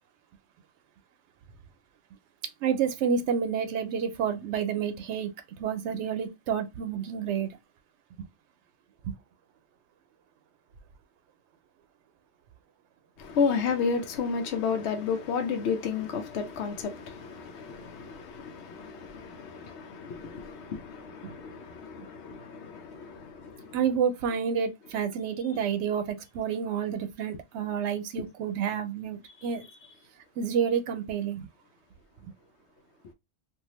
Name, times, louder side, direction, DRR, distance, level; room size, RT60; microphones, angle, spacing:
voice 1, 2.6-5.3 5.6-7.5 9.0-9.1 23.7-29.6 30.4-31.5, right 7 dB, 90° right, 0.9 m, -29 dB
voice 2, 13.2-23.8, left 5 dB, 80° left, 0.9 m, -32 dB
2.6 x 2.4 x 2.9 m
omnidirectional pair, 1.1 m